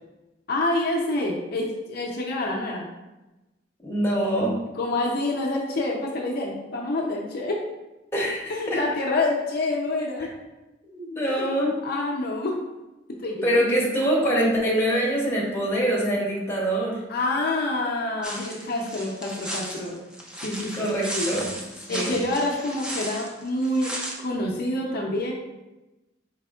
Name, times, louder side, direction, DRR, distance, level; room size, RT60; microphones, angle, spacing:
voice 1, 0.5-2.9 4.7-7.6 8.5-10.3 11.3-11.5 11.8-12.6 13.1-13.6 17.1-20.0 20.4-20.8 21.1-21.3 21.9-25.3, left 2 dB, 55° left, -2 dB, 0.5 m, -27 dB
voice 2, 3.8-4.5 8.1-8.8 10.9-11.7 13.4-17.0 20.7-21.5 21.9-22.2, right 1 dB, 15° left, -4 dB, 0.8 m, -24 dB
sound 1, 18.2-24.1, equal, 5° right, 0.4 m, -35 dB
4.3 x 3.3 x 2.3 m, 1.0 s
head